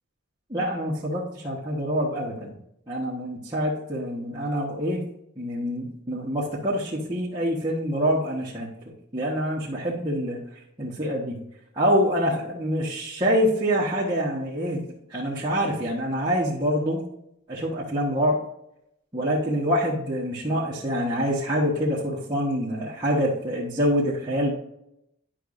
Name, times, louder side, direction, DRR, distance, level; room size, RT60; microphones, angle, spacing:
voice 1, 0.5-2.6 2.9-5.0 5.4-8.7 9.1-10.4 10.8-11.4 11.7-14.8 15.1-17.0 17.5-18.4 19.1-24.6, equal, 20° right, -8 dB, 1.2 m, -26 dB
10.0 x 5.9 x 2.5 m, 0.79 s
head